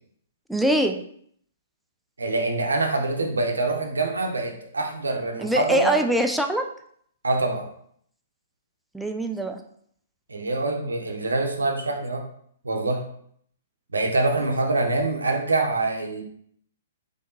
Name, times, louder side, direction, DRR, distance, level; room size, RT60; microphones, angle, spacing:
voice 1, 0.5-1.0 5.4-6.6 8.9-9.6, right 1 dB, ahead, 4 dB, 0.3 m, -23 dB
voice 2, 2.2-6.0 7.2-7.6 10.3-12.2 12.6-13.0 13.9-16.2, right 2 dB, 80° right, 2 dB, 0.6 m, -25 dB
3.5 x 3.5 x 2.6 m, 0.65 s
figure-of-eight pair, 120°, 0 cm